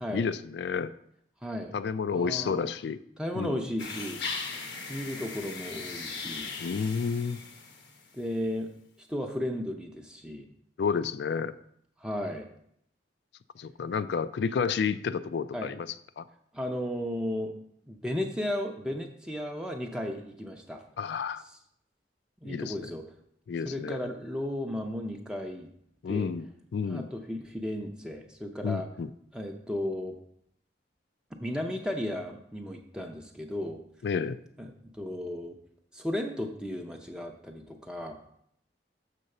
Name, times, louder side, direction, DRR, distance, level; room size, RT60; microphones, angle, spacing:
voice 1, 0.1-0.9 1.7-3.0 3.3-3.6 6.6-7.4 10.8-11.5 13.6-15.9 16.2-16.3 21.0-21.4 22.4-22.7 23.5-24.1 26.0-26.5 26.7-27.1 28.6-29.1 34.0-34.4, left 6 dB, 70° left, 14 dB, 0.3 m, -30 dB
voice 2, 1.4-1.8 2.1-2.7 3.2-4.2 4.9-6.5 8.1-8.7 9.1-10.5 12.0-12.5 15.5-15.7 16.5-17.6 17.9-20.8 22.4-23.0 23.6-25.7 26.1-26.3 26.9-28.9 29.3-30.1 31.4-33.8 34.6-35.6 35.9-38.2, left 1 dB, 5° right, 2 dB, 0.5 m, -34 dB
sound 1, 3.8-8.1, left 4 dB, 85° left, 1.0 m, -38 dB
6.8 x 3.9 x 6.4 m, 0.71 s
head